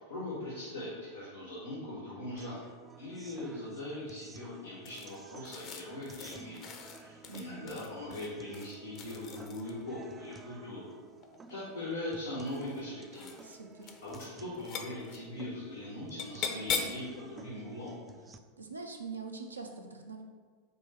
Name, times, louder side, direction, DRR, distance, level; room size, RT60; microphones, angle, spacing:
voice 1, 0.1-2.6 3.0-6.7 7.0-10.9 11.5-13.4 14.0-18.0, left 1 dB, 90° left, -8 dB, 1.2 m, -41 dB
sound 1, 2.4-18.4, right 3 dB, 20° right, 0.3 m, -54 dB
sound 2, 4.9-9.9 11.1-11.7 12.4-12.9 13.1-13.6 13.8-14.3 14.5-15.2 16.2-17.1, left 6 dB, 45° left, 0.6 m, -40 dB
voice 2, 7.3-7.7 13.4-13.9 18.6-20.2, right 4 dB, 90° right, 3 dB, 0.5 m, -43 dB
5.3 x 2.2 x 4.4 m, 1.6 s
figure-of-eight pair, 90°, 0 cm